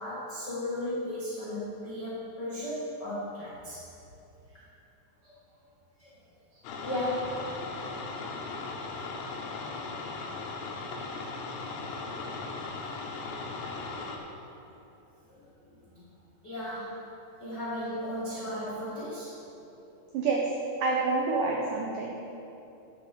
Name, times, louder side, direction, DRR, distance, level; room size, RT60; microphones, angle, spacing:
voice 1, 0.0-3.8 6.0-6.1 6.8-7.5 9.1-9.2 15.3-16.0 16.4-17.0 17.4-19.3, left 1 dB, 70° left, -8 dB, 1.0 m, -35 dB
sound 1, 6.6-14.2, left 3 dB, 85° left, 3.2 m, -38 dB
voice 2, 20.1-20.5 20.8-22.1, right 3 dB, 85° right, -1 dB, 1.8 m, -27 dB
8.9 x 7.1 x 6.8 m, 2.8 s
omnidirectional pair, 4.9 m